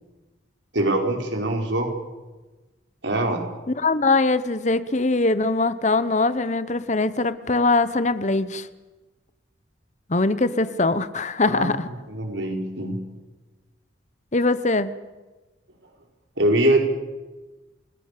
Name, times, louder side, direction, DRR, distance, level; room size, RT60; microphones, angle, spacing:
voice 1, 0.7-1.9 3.0-3.5 11.5-11.7 12.1-13.0 16.4-16.9, right 1 dB, 75° right, 2 dB, 4.9 m, -23 dB
voice 2, 3.8-8.7 10.1-11.9 14.3-14.9, left 3 dB, 40° left, 14 dB, 1.0 m, -22 dB
29.5 x 20.0 x 6.8 m, 1.2 s
head